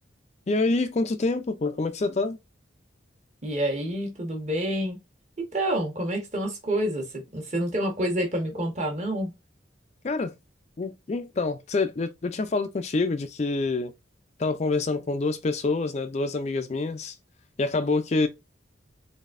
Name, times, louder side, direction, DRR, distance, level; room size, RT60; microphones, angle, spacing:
voice 1, 0.5-2.4 10.0-10.3 10.8-13.9 14.4-17.1 17.6-18.3, left 3 dB, 35° left, 0.4 m, -26 dB
voice 2, 3.4-5.0 5.4-9.3, right 1 dB, 35° right, 1.3 m, -28 dB
3.9 x 3.4 x 2.5 m
head